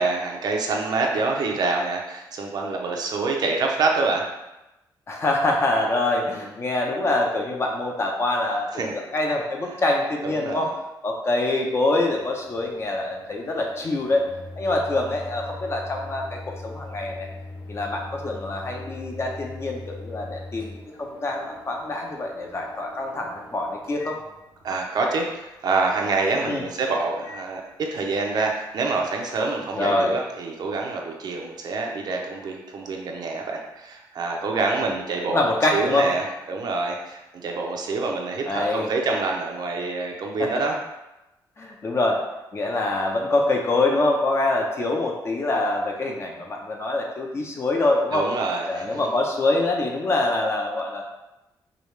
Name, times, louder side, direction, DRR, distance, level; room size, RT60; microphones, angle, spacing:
voice 1, 0.0-4.2 8.7-9.0 10.2-10.7 24.6-40.7 48.1-49.0, right 3 dB, 60° right, 1 dB, 0.6 m, -26 dB
voice 2, 5.1-10.7 11.0-14.3 14.6-17.3 17.7-24.2 26.5-26.6 29.7-30.1 34.8-34.9 35.3-36.1 38.5-38.9 40.4-40.5 41.6-42.2 42.5-48.3 48.7-51.0, left 2 dB, 35° left, 0 dB, 0.7 m, -25 dB
Microwave oven, 12.1-24.6 25.1-25.2 26.1-26.3 27.2-27.4 28.3-28.5, left 2 dB, 85° left, 1.0 m, -41 dB
4.9 x 2.4 x 3.2 m, 0.97 s
cardioid pair, 130°, 8 cm